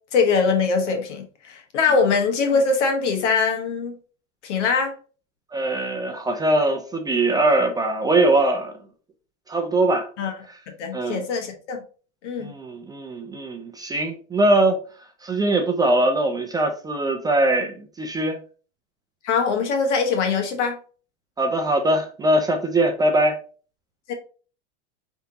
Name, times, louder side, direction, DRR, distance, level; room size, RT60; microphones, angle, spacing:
voice 1, 0.1-3.9 4.4-4.9 10.2-10.3 10.8-11.8 12.2-12.5 19.2-20.8 24.1-24.2, left 5 dB, 80° left, 1.5 m, -22 dB
voice 2, 5.5-8.7 9.5-10.1 10.9-11.2 12.4-14.8 15.2-18.4 21.4-23.4, right 2 dB, 10° right, 0.4 m, -21 dB
4.9 x 3.5 x 2.8 m
supercardioid pair, 125°, 35 cm